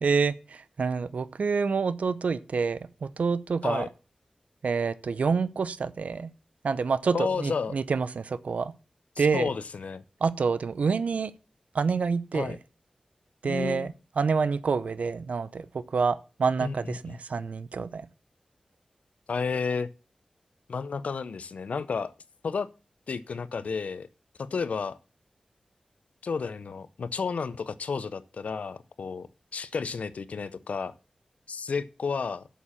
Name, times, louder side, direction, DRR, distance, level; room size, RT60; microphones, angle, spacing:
voice 1, 0.0-3.9 4.6-6.3 6.6-8.7 9.2-9.5 10.2-11.3 11.7-12.6 13.4-18.1, right 5 dB, 80° right, 0.7 m, -27 dB
voice 2, 7.1-7.8 9.2-10.0 12.3-12.6 13.4-13.9 16.6-17.2 19.3-19.9 20.7-22.1 22.4-22.7 23.1-24.1 24.4-25.0 26.2-29.3 29.5-30.9 31.5-32.5, left 5 dB, 80° left, 0.6 m, -32 dB
8.5 x 7.3 x 7.3 m
wide cardioid pair, 85°, 2 cm